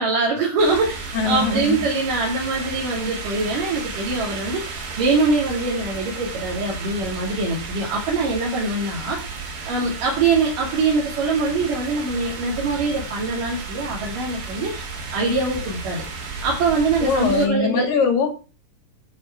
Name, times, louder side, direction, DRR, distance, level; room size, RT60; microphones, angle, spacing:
voice 1, 0.0-16.0 16.4-17.9, right 3 dB, 55° right, -4 dB, 4.0 m, -23 dB
sound 1, 0.6-17.5, right 4 dB, 70° right, 5.4 m, -33 dB
voice 2, 1.1-1.8 17.0-18.4, left 5 dB, 55° left, 4 dB, 4.1 m, -21 dB
11.0 x 9.4 x 6.0 m, 0.35 s
omnidirectional pair, 5.0 m